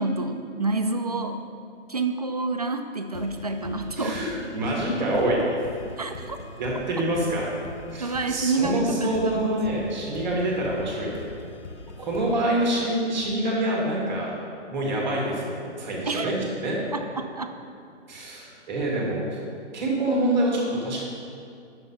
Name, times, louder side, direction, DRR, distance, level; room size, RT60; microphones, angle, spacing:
voice 1, 0.0-1.4 1.9-4.2 6.0-6.4 8.0-9.9 16.1-16.3 16.9-17.5, right 3 dB, 35° right, 6 dB, 0.4 m, -28 dB
sound 1, 3.1-12.5, left 3 dB, 70° left, 0.9 m, -42 dB
voice 2, 4.0-5.4 6.6-7.5 7.9-11.2 12.0-14.3 14.7-16.8 18.1-19.4 19.7-21.0, right 1 dB, 5° right, -3 dB, 1.1 m, -26 dB
9.2 x 6.5 x 5.5 m, 2.4 s
hypercardioid pair, 170°, 37 cm